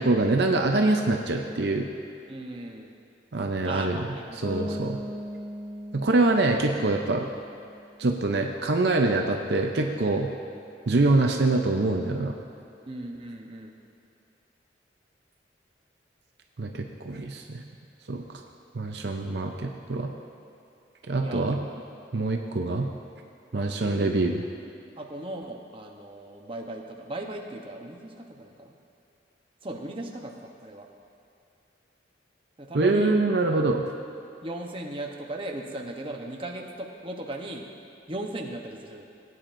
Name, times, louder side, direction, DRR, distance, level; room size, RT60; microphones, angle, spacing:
voice 1, 0.0-1.9 3.3-4.0 4.4-5.0 5.9-7.3 8.0-10.3 10.9-12.4 16.6-17.6 18.1-18.4 18.7-20.1 21.1-21.6 22.1-22.9 23.5-24.4 32.7-33.8, right 2 dB, 65° right, 2 dB, 0.6 m, -24 dB
voice 2, 2.3-2.9 3.6-4.9 12.9-13.8 21.2-21.8 23.5-24.3 25.0-28.8 29.6-30.9 32.6-33.2 34.4-37.7 38.1-39.0, right 1 dB, 30° right, 0 dB, 0.9 m, -38 dB
Bass guitar, 4.4-8.1, equal, 10° left, 1.3 m, -39 dB
18.0 x 9.1 x 2.6 m, 2.7 s
head